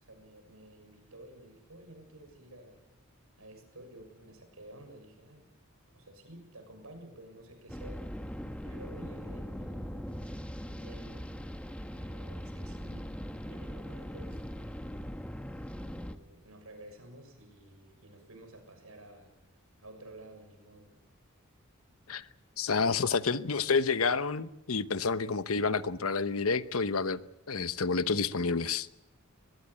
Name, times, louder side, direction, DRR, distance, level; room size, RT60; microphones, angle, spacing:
voice 1, 0.0-2.9 3.4-5.5 5.9-8.1 8.6-10.4 10.7-11.3 11.9-14.5 15.7-21.0, right 1 dB, 90° right, 6.8 m, -52 dB
sound 1, 7.7-16.1, equal, 5° left, 1.2 m, -40 dB
voice 2, 22.6-27.2 27.5-28.9, left 4 dB, 85° left, 1.0 m, -29 dB
22.0 x 21.5 x 8.5 m
head